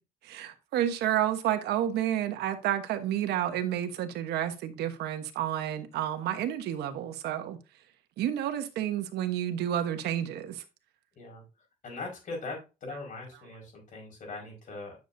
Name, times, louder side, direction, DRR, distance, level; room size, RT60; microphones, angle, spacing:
voice 1, 0.2-7.6 8.2-10.6, right 11 dB, 75° right, 1.2 m, -30 dB
voice 2, 11.8-15.0, left 3 dB, 50° left, 5.2 m, -40 dB
10.0 x 6.6 x 2.7 m
cardioid pair, 110°, 17 cm